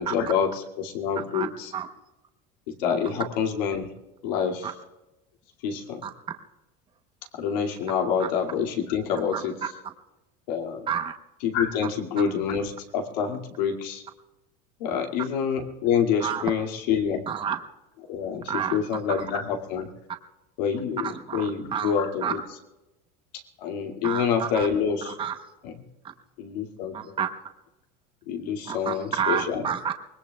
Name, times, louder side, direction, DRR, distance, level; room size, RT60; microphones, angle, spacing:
voice 1, 0.0-1.7 2.7-3.9 4.2-4.7 5.6-6.0 7.4-9.7 10.5-10.9 11.4-14.0 14.8-17.3 18.0-19.9 20.6-22.6 23.6-25.2 25.6-25.9 26.4-27.2 28.3-29.7, left 7 dB, 85° left, 2 dB, 2.4 m, -27 dB
voice 2, 6.0-6.3 8.2-8.3 9.3-9.4 10.9-11.1 11.8-11.9 16.2-16.5 17.3-17.6 18.5-19.3 21.0-22.3 24.0-24.7 25.0-25.4 26.9-27.3 28.7-29.9, right 8 dB, 25° right, 7 dB, 1.0 m, -30 dB
24.5 x 20.0 x 2.3 m, 0.97 s
cardioid pair, 140°, 21 cm